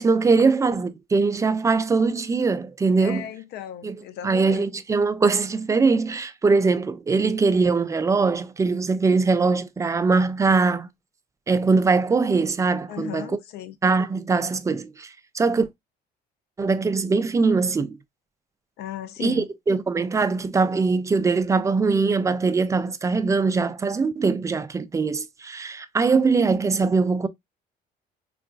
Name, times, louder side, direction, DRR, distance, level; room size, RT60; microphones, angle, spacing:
voice 1, 0.0-3.3 3.8-4.0 4.2-10.9 11.5-13.3 13.8-15.7 16.6-18.0 19.2-27.3, right 4 dB, 20° right, 0.3 m, -22 dB
voice 2, 3.0-4.6 12.9-13.8 18.8-19.5, left 11 dB, 75° left, 0.5 m, -36 dB
3.8 x 2.4 x 2.3 m
cardioid pair, 110°, 17 cm